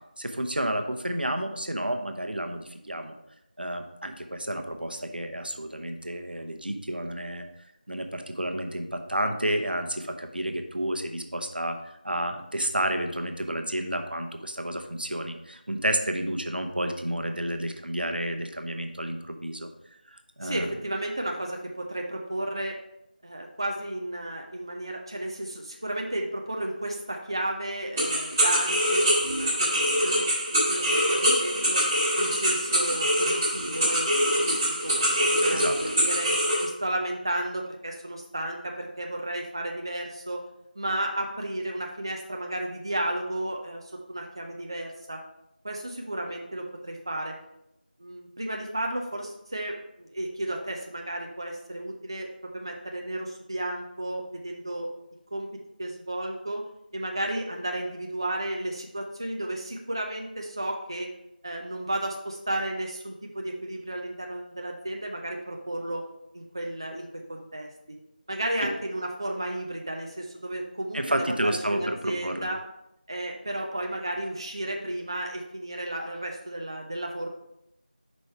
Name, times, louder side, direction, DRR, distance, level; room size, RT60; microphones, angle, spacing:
voice 1, 0.2-3.1 3.6-7.4 7.9-11.8 12.0-19.7 20.1-20.7 35.5-35.8 70.9-72.5, right 1 dB, 80° right, 5 dB, 0.9 m, -30 dB
voice 2, 20.4-22.8 23.2-30.3 30.7-31.9 32.2-40.4 40.8-45.2 45.6-47.3 48.0-54.9 55.3-55.5 55.8-56.6 56.9-61.1 61.4-66.0 66.3-67.7 68.3-72.6 73.1-77.3, right 1 dB, 30° right, 1 dB, 0.5 m, -33 dB
sound 1, 28.0-36.7, equal, 10° right, 1.3 m, -24 dB
5.3 x 4.9 x 4.4 m, 0.84 s
figure-of-eight pair, 175°, 5 cm